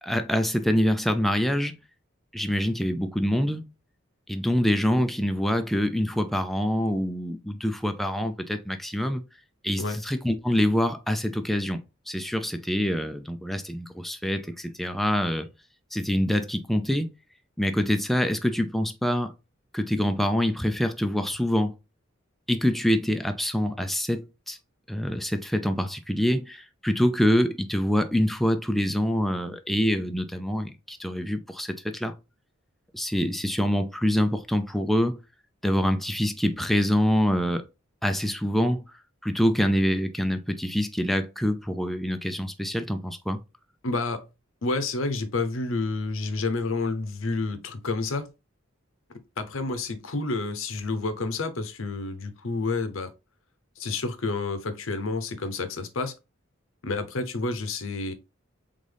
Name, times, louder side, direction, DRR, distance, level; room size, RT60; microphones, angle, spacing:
voice 1, 0.0-1.8 2.3-3.7 4.3-9.2 9.6-11.8 12.1-15.5 15.9-17.1 17.6-19.3 19.7-21.7 22.5-24.6 24.9-32.1 32.9-35.2 35.6-37.6 38.0-38.8 39.2-43.4, equal, ahead, 0.4 m, -25 dB
voice 2, 43.8-44.3 44.6-48.3 49.4-53.1 53.8-56.2 56.8-58.1, left 3 dB, 85° left, 0.8 m, -29 dB
4.0 x 3.6 x 3.4 m
head